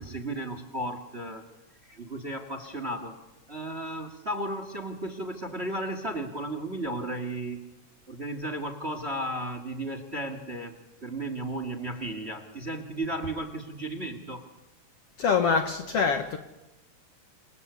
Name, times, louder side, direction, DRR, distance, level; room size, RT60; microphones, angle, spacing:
voice 1, 0.0-1.5 1.8-3.2 3.5-7.7 8.1-14.4, right 1 dB, 25° right, 1.8 m, -34 dB
voice 2, 15.2-16.4, left 5 dB, 60° left, 1.8 m, -24 dB
27.5 x 25.5 x 8.2 m
omnidirectional pair, 3.8 m